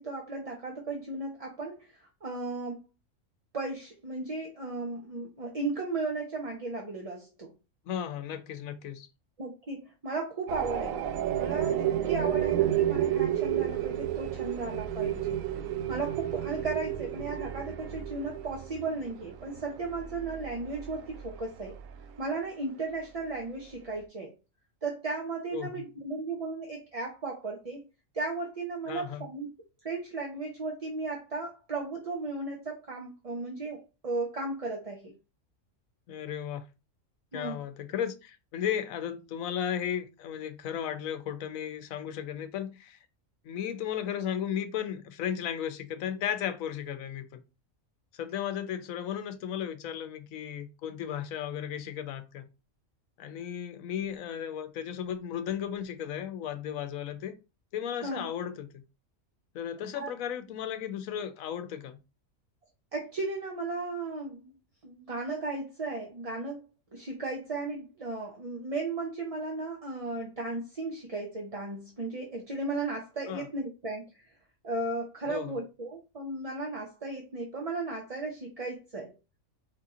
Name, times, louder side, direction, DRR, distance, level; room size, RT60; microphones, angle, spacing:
voice 1, 0.0-2.8 3.5-7.5 9.4-11.0 11.3-15.4 15.9-21.8 22.2-24.3 24.8-27.8 28.1-29.5 29.8-35.1 37.3-37.6 58.0-58.2 59.9-60.1 62.9-64.5 64.8-74.3 74.6-79.1, right 3 dB, 35° right, 0.7 m, -35 dB
voice 2, 7.9-9.1 25.5-25.8 28.9-29.3 36.1-36.6 37.3-43.0 43.4-47.4 48.1-52.5 53.2-57.4 57.7-58.8 59.5-62.0 73.3-73.5 75.3-75.6, left 9 dB, 90° left, 1.1 m, -35 dB
sound 1, 10.5-22.1, right 11 dB, 85° right, 1.0 m, -31 dB
4.7 x 2.8 x 3.6 m
omnidirectional pair, 1.4 m